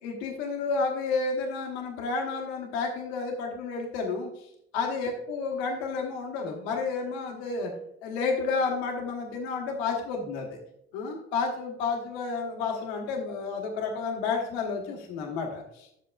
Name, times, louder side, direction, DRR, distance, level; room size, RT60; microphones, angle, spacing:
voice 1, 0.0-4.3 4.7-7.7 8.0-10.6 10.9-16.0, left 4 dB, 75° left, 0 dB, 1.2 m, -31 dB
9.5 x 7.6 x 2.4 m, 0.75 s
figure-of-eight pair, 45°, 33 cm